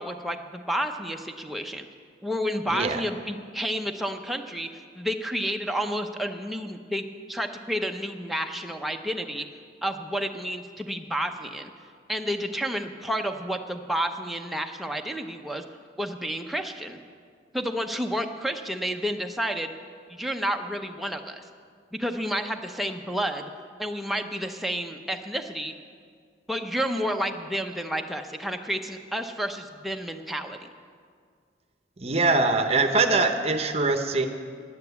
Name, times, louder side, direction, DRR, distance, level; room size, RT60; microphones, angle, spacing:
voice 1, 0.0-1.9 2.2-4.7 4.9-9.5 9.8-11.7 12.1-15.6 16.0-17.0 17.5-19.7 20.1-21.4 21.9-23.5 23.8-25.7 26.5-30.7, equal, ahead, 4 dB, 0.6 m, -30 dB
voice 2, 2.7-3.0 32.0-34.3, right 3 dB, 35° right, 6 dB, 0.8 m, -23 dB
11.0 x 9.0 x 8.1 m, 2.1 s
head